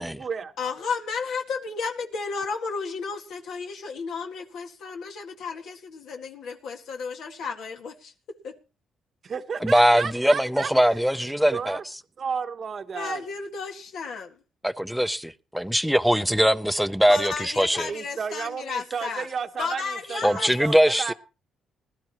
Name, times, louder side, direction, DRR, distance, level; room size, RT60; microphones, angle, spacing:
voice 1, 0.0-0.5 9.2-11.0 11.5-11.8 12.2-13.2 17.9-21.1, right 6 dB, 45° right, 1.0 m, -32 dB
voice 2, 0.6-8.1 8.4-8.5 12.9-14.4 17.1-19.3 19.6-21.1, left 5 dB, 75° left, 1.9 m, -33 dB
voice 3, 9.6-11.8 14.6-17.9 20.2-21.1, equal, ahead, 0.7 m, -21 dB
20.5 x 12.5 x 3.0 m
cardioid pair, 90°, 0 cm